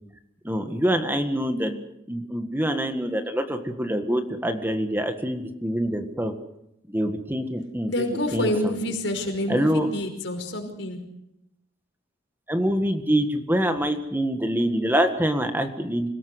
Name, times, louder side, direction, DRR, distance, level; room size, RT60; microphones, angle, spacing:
voice 1, 0.4-6.3 6.9-8.0 8.3-8.8 9.5-9.9 12.5-16.1, equal, 10° right, 7 dB, 1.7 m, -25 dB
voice 2, 7.9-11.1, left 1 dB, 85° left, 4 dB, 5.4 m, -28 dB
26.5 x 17.5 x 8.1 m, 0.82 s
head